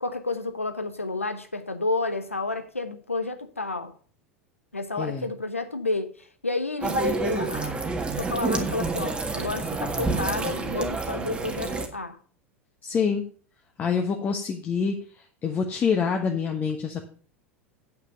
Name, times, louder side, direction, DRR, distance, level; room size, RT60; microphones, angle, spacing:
voice 1, 0.0-3.9 4.7-7.8 8.2-12.2, left 3 dB, 85° left, 1.0 m, -30 dB
sound 1, 6.8-11.9, right 3 dB, 15° right, 1.7 m, -28 dB
voice 2, 12.8-13.2 13.8-14.9 15.4-17.0, left 6 dB, 25° left, 1.3 m, -26 dB
9.0 x 6.0 x 6.5 m
figure-of-eight pair, 80°, 7 cm